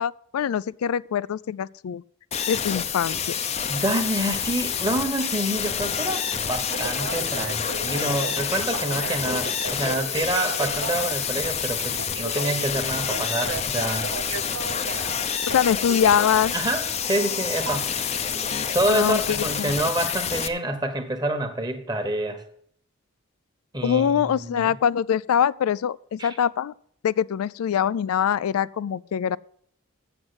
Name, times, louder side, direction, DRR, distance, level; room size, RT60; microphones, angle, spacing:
voice 1, 0.0-2.0 2.5-3.2 15.5-16.5 18.9-19.7 23.8-26.7 27.0-29.4, left 8 dB, 90° left, 0.3 m, -23 dB
sound 1, 2.3-20.5, left 7 dB, 30° left, 0.5 m, -28 dB
voice 2, 3.7-14.1 16.5-17.9 18.7-22.4 23.7-24.7 26.2-26.4, right 1 dB, 20° right, 1.2 m, -27 dB
Telephone, 6.5-16.1 17.7-17.8, right 5 dB, 80° right, 0.8 m, -35 dB
8.0 x 7.5 x 7.9 m
head